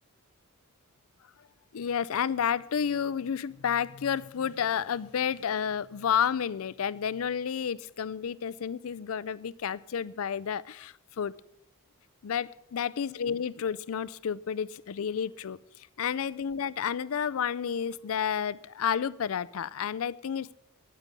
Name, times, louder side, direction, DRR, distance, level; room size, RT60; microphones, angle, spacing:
voice 1, 1.7-11.3 12.2-20.6, left 7 dB, 75° left, 20 dB, 0.4 m, -31 dB
9.7 x 9.0 x 8.1 m, 0.82 s
head